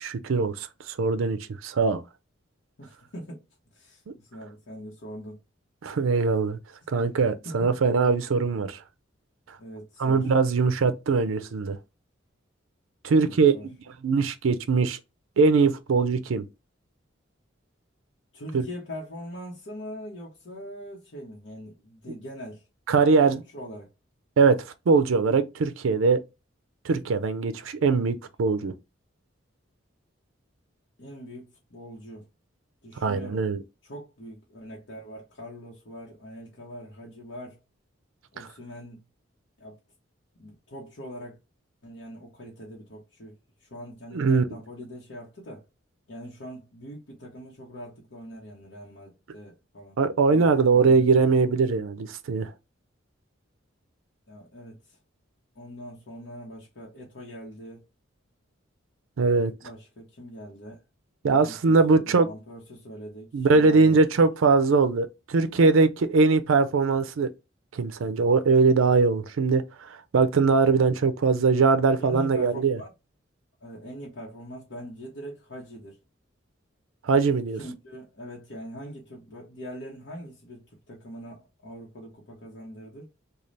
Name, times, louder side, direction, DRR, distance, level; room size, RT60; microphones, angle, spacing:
voice 1, 0.0-2.0 5.8-6.6 6.9-8.8 10.0-11.8 13.0-13.5 14.0-15.0 15.4-16.4 18.5-18.7 22.9-23.4 24.4-26.2 26.8-28.7 33.0-33.6 38.4-38.5 44.1-44.5 50.0-52.5 59.2-59.5 61.2-62.3 63.3-67.3 67.7-72.8 77.0-77.6, right 4 dB, 85° right, 0.4 m, -21 dB
voice 2, 2.8-3.4 3.7-5.4 7.4-7.7 9.6-10.3 13.2-13.7 18.3-22.6 23.2-23.9 31.0-32.2 32.8-33.4 33.8-37.6 38.3-39.0 39.6-39.8 40.4-41.4 41.8-45.6 46.1-50.0 50.3-51.1 51.4-51.8 54.3-55.0 55.5-57.8 59.6-60.8 61.2-64.3 72.0-72.9 73.6-76.0 77.6-83.1, equal, 65° left, 1.0 m, -42 dB
3.2 x 2.3 x 3.9 m
head